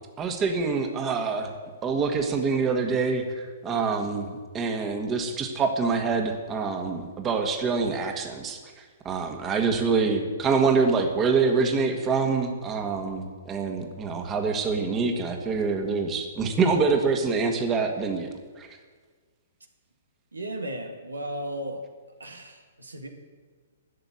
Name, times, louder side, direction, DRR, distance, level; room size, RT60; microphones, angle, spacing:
voice 1, 0.2-1.5 1.8-8.6 9.0-18.3 18.6-18.7, right 4 dB, 20° right, 4 dB, 1.7 m, -25 dB
voice 2, 20.3-21.9 22.2-23.1, right 1 dB, 90° right, 4 dB, 1.8 m, -35 dB
12.0 x 6.9 x 9.6 m, 1.5 s
figure-of-eight pair, 125°, 0 cm